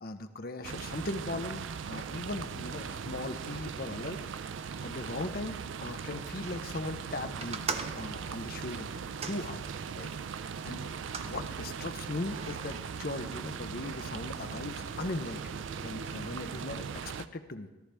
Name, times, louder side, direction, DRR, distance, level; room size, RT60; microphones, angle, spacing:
voice 1, 0.0-4.2 4.8-7.7 7.9-8.9 9.3-9.6 10.0-10.1 10.4-10.9 11.2-17.7, left 2 dB, 50° left, 8 dB, 0.7 m, -39 dB
sound 1, 0.6-16.2, left 2 dB, 60° right, 2.0 m, -58 dB
sound 2, 0.6-17.3, right 6 dB, 80° right, 0.4 m, -39 dB
sound 3, 7.4-10.2 10.8-11.3 12.1-12.8, right 5 dB, 30° right, 0.6 m, -40 dB
14.0 x 13.0 x 3.4 m, 1.1 s
head